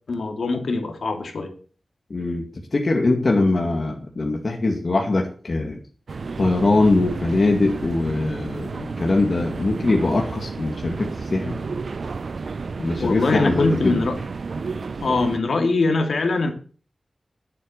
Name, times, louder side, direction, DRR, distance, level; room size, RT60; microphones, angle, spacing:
voice 1, 0.1-1.5 13.0-14.2 15.0-16.5, left 3 dB, 90° left, 5 dB, 2.6 m, -22 dB
voice 2, 2.1-2.4 2.7-5.8 6.4-11.6 12.8-14.0, left 2 dB, 55° left, 1 dB, 2.2 m, -22 dB
sound 1, 6.1-15.4, right 4 dB, 75° right, 0.8 m, -32 dB
11.0 x 8.6 x 6.9 m, 0.40 s
wide cardioid pair, 90°, 0 cm